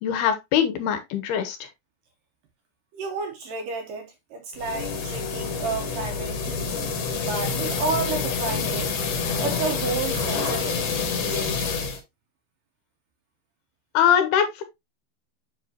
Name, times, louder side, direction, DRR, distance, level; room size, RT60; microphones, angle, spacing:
voice 1, 0.0-1.6 13.9-14.6, left 9 dB, 80° left, 2.9 m, -22 dB
voice 2, 2.9-6.8 7.2-8.9 9.4-11.7, right 4 dB, 70° right, 2.2 m, -31 dB
sound 1, 4.5-12.0, left 5 dB, 60° left, 2.8 m, -27 dB
7.6 x 5.5 x 2.8 m
omnidirectional pair, 4.8 m